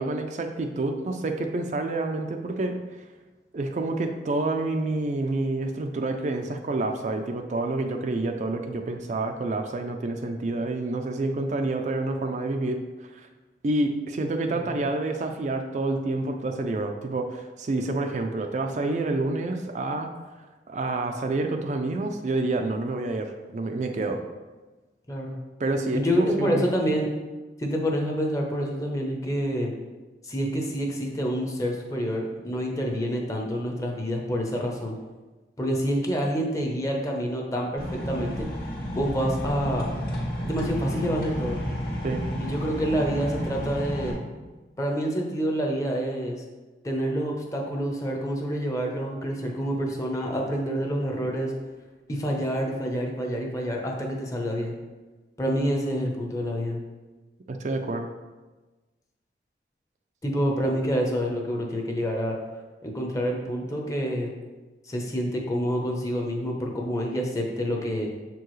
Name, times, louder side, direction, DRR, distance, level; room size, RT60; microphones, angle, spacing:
voice 1, 0.0-3.1 3.5-13.3 13.6-20.1 20.7-24.2 25.6-26.7 42.0-42.2 55.5-55.6 57.5-58.1, right 2 dB, 40° right, 5 dB, 0.4 m, -28 dB
voice 2, 25.1-25.4 25.9-27.1 27.6-29.7 30.2-34.9 35.6-38.5 38.9-39.9 40.4-41.6 42.4-44.1 44.8-46.4 46.8-51.5 52.1-54.7 55.4-56.8 60.2-62.4 62.8-64.3 64.9-68.1, equal, 20° left, 0 dB, 0.8 m, -27 dB
sound 1, 37.8-44.1, equal, 55° left, 1.5 m, -31 dB
6.8 x 4.6 x 3.1 m, 1.2 s
head